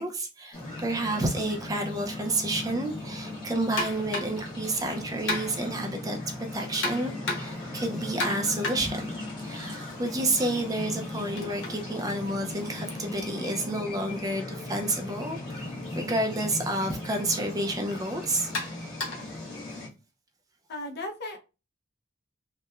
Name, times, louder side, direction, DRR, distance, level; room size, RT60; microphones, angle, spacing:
voice 1, 0.0-6.2 6.5-9.0 9.4-18.5, right 1 dB, 20° right, 0.4 m, -30 dB
sound 1, 0.5-19.9, left 2 dB, 25° left, 1.3 m, -38 dB
sound 2, 3.8-4.5 5.3-5.8 6.8-7.7 8.2-10.0 10.3-14.2 15.2-15.4 15.9-16.0 16.9-17.0 18.5-19.4, left 2 dB, 85° left, 1.1 m, -35 dB
voice 2, 20.7-21.4, left 2 dB, 60° left, 0.6 m, -35 dB
2.8 x 2.1 x 2.2 m
head